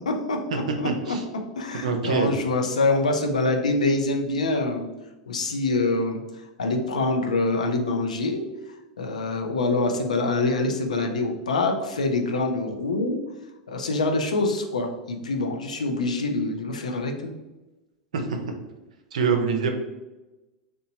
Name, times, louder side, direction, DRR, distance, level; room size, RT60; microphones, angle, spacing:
voice 1, 0.1-1.2 1.6-4.9 5.3-6.2 6.6-8.4 9.0-13.2 13.7-17.3, left 2 dB, 85° left, 4 dB, 0.4 m, -25 dB
voice 2, 0.8-1.2 1.8-2.3 18.1-18.4 19.1-19.7, right 5 dB, 80° right, 5 dB, 0.5 m, -24 dB
2.9 x 2.1 x 2.7 m, 1.1 s
hypercardioid pair, 95°, 4 cm